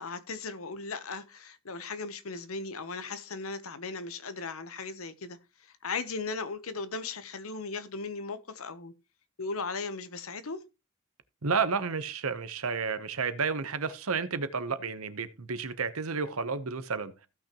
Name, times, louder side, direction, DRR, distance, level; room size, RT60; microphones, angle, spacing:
voice 1, 0.0-8.9 9.4-10.6, left 4 dB, 80° left, 1.0 m, -37 dB
voice 2, 11.4-17.3, right 5 dB, 90° right, 1.0 m, -31 dB
15.5 x 5.9 x 3.0 m
head